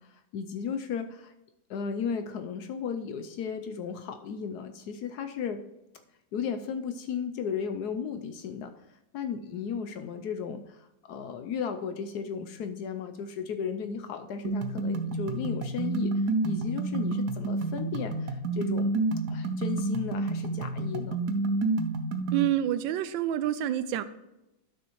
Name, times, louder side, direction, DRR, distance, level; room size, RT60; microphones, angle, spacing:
voice 1, 0.0-1.3 1.7-5.6 6.3-8.7 9.1-16.1 16.4-19.0 19.3-21.2, left 6 dB, 70° left, 8 dB, 1.0 m, -35 dB
sound 1, 14.4-22.4, right 3 dB, 65° right, 1.2 m, -29 dB
voice 2, 22.3-24.0, right 12 dB, 85° right, 14 dB, 1.3 m, -27 dB
11.5 x 6.2 x 3.0 m, 0.92 s
omnidirectional pair, 2.0 m